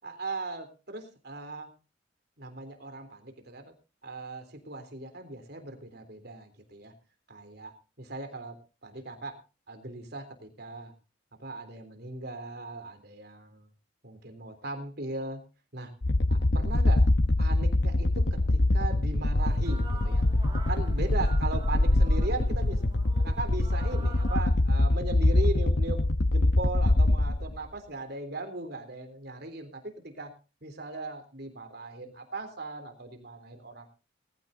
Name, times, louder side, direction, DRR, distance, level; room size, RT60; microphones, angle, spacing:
voice 1, 0.0-1.7 2.4-3.7 4.0-6.9 7.3-8.6 8.8-9.4 9.7-10.9 11.4-13.7 14.0-15.4 15.7-15.9 16.3-17.0 17.4-20.2 20.7-22.8 23.2-26.0 26.3-30.3 30.6-33.9, right 2 dB, 60° right, 7 dB, 3.4 m, -38 dB
sound 1, 16.0-27.6, left 1 dB, 65° left, 0.9 m, -24 dB
sound 2, 19.4-24.4, right 3 dB, 25° right, 4.3 m, -47 dB
20.0 x 14.5 x 2.7 m, 0.32 s
head